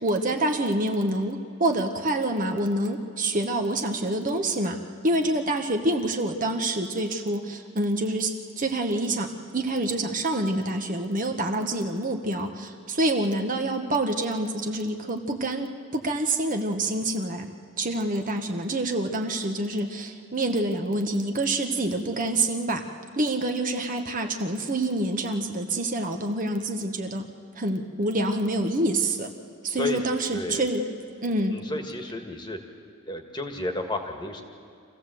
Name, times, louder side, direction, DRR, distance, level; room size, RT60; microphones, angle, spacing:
voice 1, 0.0-17.5 17.8-22.8 23.1-27.3 27.6-29.3 29.6-30.8 31.2-31.5, right 1 dB, 35° right, 4 dB, 1.2 m, -27 dB
voice 2, 30.3-30.7 31.5-32.6 33.1-34.4, left 2 dB, 20° left, 4 dB, 1.6 m, -32 dB
26.0 x 15.5 x 7.7 m, 2.5 s
head